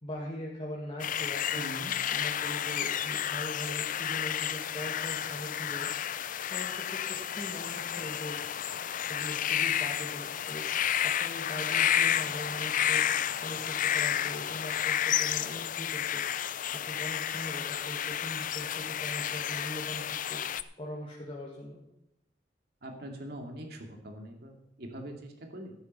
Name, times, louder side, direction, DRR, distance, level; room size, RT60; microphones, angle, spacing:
voice 1, 0.0-1.7 2.1-5.9 6.5-8.4 9.1-10.6 11.0-13.1 13.4-16.2 16.7-20.0 20.3-20.4 20.8-21.8, equal, 30° left, -4 dB, 2.0 m, -41 dB
sound 1, 1.0-20.6, left 10 dB, 45° left, 0.5 m, -31 dB
voice 2, 1.5-1.9 22.8-25.7, right 1 dB, 60° right, 3 dB, 2.5 m, -42 dB
13.5 x 9.6 x 5.5 m, 0.84 s
head